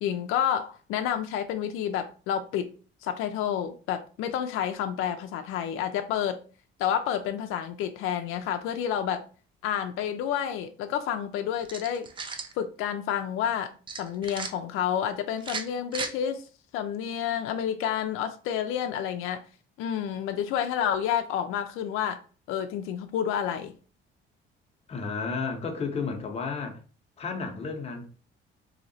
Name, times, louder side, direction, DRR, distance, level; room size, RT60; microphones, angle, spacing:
voice 1, 0.0-2.7 3.0-6.4 6.8-9.2 9.6-12.1 12.6-16.5 16.7-19.4 19.8-22.2 22.5-23.7, left 9 dB, 90° left, 0.5 m, -29 dB
sound 1, 11.6-12.5 13.9-14.5 15.4-16.1, right 4 dB, 25° right, 0.4 m, -35 dB
voice 2, 24.9-26.8 27.2-28.1, left 4 dB, 30° left, 0.8 m, -32 dB
3.0 x 2.8 x 4.0 m
cardioid pair, 160°, 21 cm